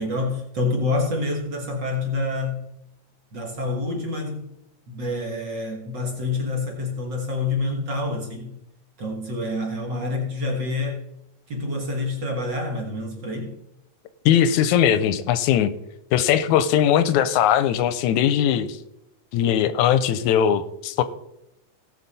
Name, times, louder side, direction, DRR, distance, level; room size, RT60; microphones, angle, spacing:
voice 1, 0.0-2.6 3.3-4.5 4.9-8.6 9.0-11.0 11.5-13.6, left 2 dB, 45° right, 0 dB, 1.6 m, -27 dB
voice 2, 14.3-15.7 16.1-18.8 19.3-21.0, left 9 dB, 90° left, 13 dB, 2.0 m, -20 dB
17.5 x 5.9 x 4.1 m, 0.85 s
omnidirectional pair, 3.4 m